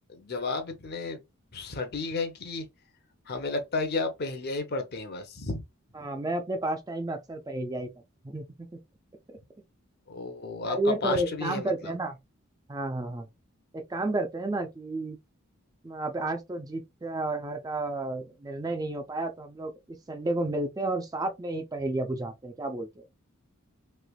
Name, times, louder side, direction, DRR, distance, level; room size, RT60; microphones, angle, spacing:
voice 1, 0.1-1.2 1.5-2.6 3.3-5.6 10.1-11.9, left 3 dB, 50° left, 0.7 m, -32 dB
voice 2, 5.9-7.9 8.2-8.7 10.6-12.2 12.7-13.3 13.7-15.2 15.8-23.0, right 2 dB, 15° right, 0.4 m, -31 dB
3.2 x 2.9 x 2.3 m
head